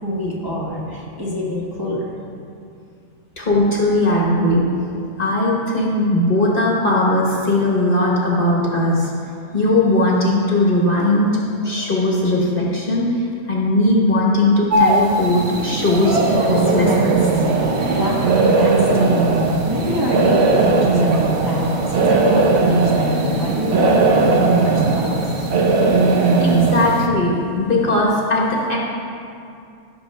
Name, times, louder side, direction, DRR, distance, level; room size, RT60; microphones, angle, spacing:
voice 1, 0.0-2.0 17.9-19.3 19.6-25.1, left 1 dB, 15° right, -6 dB, 1.3 m, -26 dB
voice 2, 3.4-4.9 5.2-9.1 9.5-17.3 26.4-28.8, left 1 dB, 40° left, -3 dB, 1.4 m, -18 dB
sound 1, 14.7-27.1, right 3 dB, 55° right, 1.0 m, -17 dB
16.0 x 6.7 x 3.4 m, 2.5 s
omnidirectional pair, 1.6 m